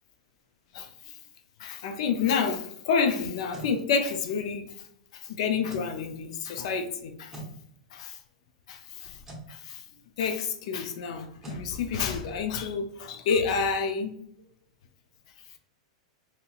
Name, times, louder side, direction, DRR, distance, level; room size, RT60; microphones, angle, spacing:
voice 1, 0.7-1.1 1.6-4.7 5.1-7.4 7.9-8.2 8.7-9.2 9.5-9.8 10.2-14.1, left 5 dB, 65° left, 0.4 m, -29 dB
sound 1, 3.2-3.8 5.6-5.9 7.3-7.6 9.2-9.5 11.4-11.7, right 2 dB, 10° right, 0.9 m, -41 dB
2.8 x 2.8 x 2.4 m
hypercardioid pair, 130°, 4 cm